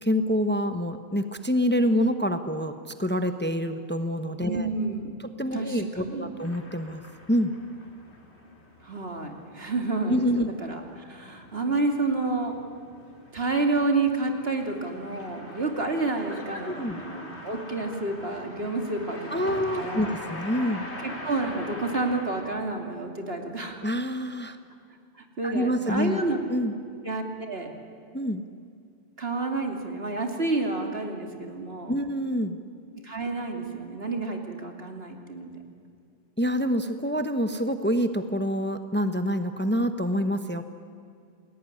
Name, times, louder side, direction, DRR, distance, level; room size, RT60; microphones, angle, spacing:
voice 1, 0.0-2.7 3.0-4.7 5.4-7.0 7.3-7.5 10.1-10.5 16.6-17.0 19.3-20.9 23.8-24.6 25.4-26.2 26.5-26.7 28.1-28.4 31.9-32.6 36.4-40.7, equal, 10° left, 8 dB, 1.0 m, -26 dB
voice 2, 4.4-5.1 5.5-6.3 8.8-12.6 13.3-20.1 21.0-23.8 25.1-26.4 27.0-27.8 29.2-32.0 33.0-35.6, right 3 dB, 65° right, 3 dB, 3.1 m, -29 dB
sound 1, 6.4-22.5, left 1 dB, 90° left, 3.6 m, -43 dB
29.5 x 19.5 x 9.9 m, 2.3 s
omnidirectional pair, 1.1 m